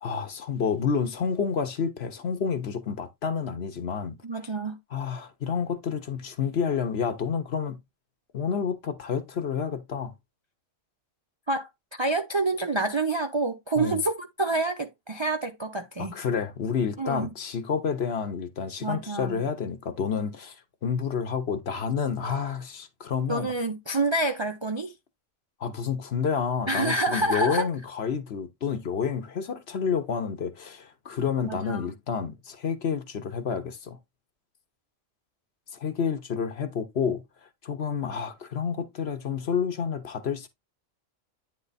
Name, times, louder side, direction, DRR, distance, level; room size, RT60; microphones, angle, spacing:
voice 1, 0.0-4.2 4.9-7.8 8.3-10.1 13.7-14.0 16.0-20.6 20.8-23.5 25.6-34.0 35.7-37.2 37.6-40.5, left 6 dB, 55° left, 1.1 m, -29 dB
voice 2, 4.2-4.8 11.5-16.1 17.0-17.3 18.8-19.4 23.3-24.9 26.7-27.7 31.5-31.9, right 2 dB, 40° right, 0.4 m, -28 dB
9.4 x 3.4 x 4.0 m
omnidirectional pair, 1.4 m